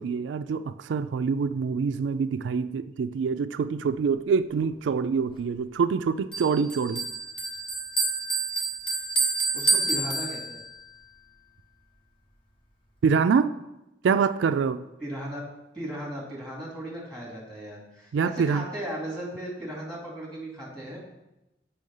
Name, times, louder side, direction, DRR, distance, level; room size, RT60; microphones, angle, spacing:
voice 1, 0.0-7.1 13.0-13.5 14.0-14.8 18.1-18.7, right 5 dB, 85° right, 11 dB, 0.3 m, -25 dB
Bell, 6.3-10.8, right 3 dB, 30° left, 1.2 m, -28 dB
voice 2, 9.5-10.6 15.0-15.4 15.7-21.0, right 1 dB, 5° left, -5 dB, 2.6 m, -36 dB
7.7 x 5.6 x 5.5 m, 0.93 s
head